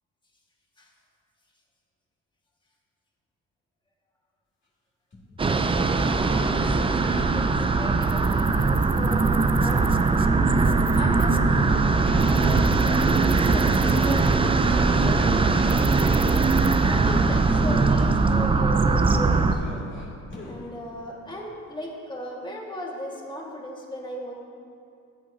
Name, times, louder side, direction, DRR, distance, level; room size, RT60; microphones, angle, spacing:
sound 1, 5.1-6.6 7.9-9.3 9.5-14.5 14.8-16.4 16.8-18.0 19.1-20.8 21.3-21.4, left 2 dB, 40° left, 2.5 m, -42 dB
Wind on Beach, 5.4-19.5, right 3 dB, 20° right, 0.4 m, -21 dB
voice 1, 6.3-10.0 10.9-11.4 12.2-15.5 16.8-19.6 20.4-24.3, equal, 15° left, -2 dB, 1.7 m, -37 dB
14.0 x 8.4 x 2.7 m, 2.5 s
cardioid pair, 90°, 30 cm